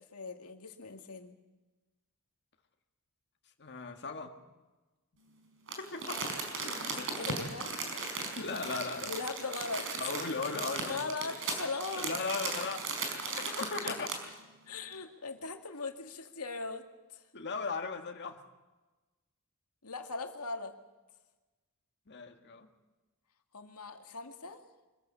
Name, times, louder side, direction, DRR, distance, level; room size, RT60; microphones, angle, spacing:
voice 1, 0.0-1.4 6.7-7.7 9.1-9.9 10.9-12.1 13.8-14.0 14.7-16.8 17.1-17.2 19.8-20.7 23.5-24.6, left 3 dB, 80° left, 5 dB, 2.1 m, -40 dB
voice 2, 3.6-4.4 5.8-6.3 7.3-7.4 8.4-9.1 9.9-11.1 11.9-12.9 13.3-14.1 17.3-18.4 22.1-22.7, left 4 dB, 50° left, 4 dB, 1.8 m, -37 dB
Crumpling crinkling, 5.7-14.3 14.8-14.9, right 4 dB, 60° right, 4.8 m, -37 dB
24.5 x 15.0 x 8.4 m, 1.2 s
head